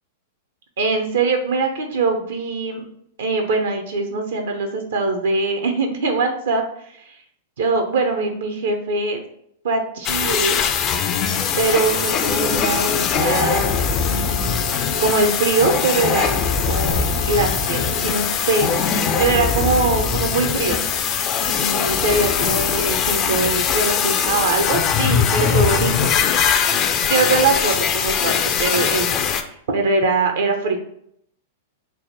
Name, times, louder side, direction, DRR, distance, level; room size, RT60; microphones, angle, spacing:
voice 1, 0.8-2.8 3.2-6.6 7.1-7.2 7.6-9.2 9.6-10.6 11.5-13.8 14.1-14.7 15.0-16.4 16.7-20.8 21.4-26.1 27.1-28.3 28.6-29.1 29.4-30.8, right 3 dB, 70° right, 4 dB, 0.5 m, -22 dB
sound 1, 10.0-29.4, left 7 dB, 35° left, 0.3 m, -21 dB
sound 2, 11.6-19.0, left 3 dB, 75° left, 0.8 m, -35 dB
3.3 x 2.1 x 4.2 m, 0.70 s
hypercardioid pair, 105°, 0 cm